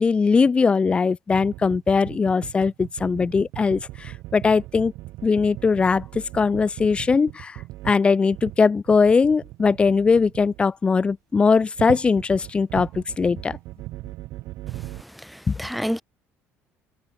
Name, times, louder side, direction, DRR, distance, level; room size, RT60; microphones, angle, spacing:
voice 1, 0.0-4.9 5.2-7.6 7.8-13.6 15.5-15.6, left 5 dB, 20° left, 1.9 m, -20 dB
sound 1, 1.3-8.6 8.9-10.7 11.4-15.0, right 18 dB, 75° right, 4.3 m, -38 dB
voice 2, 15.0-16.0, equal, ahead, 3.4 m, -30 dB
cardioid pair, 145°, 5 cm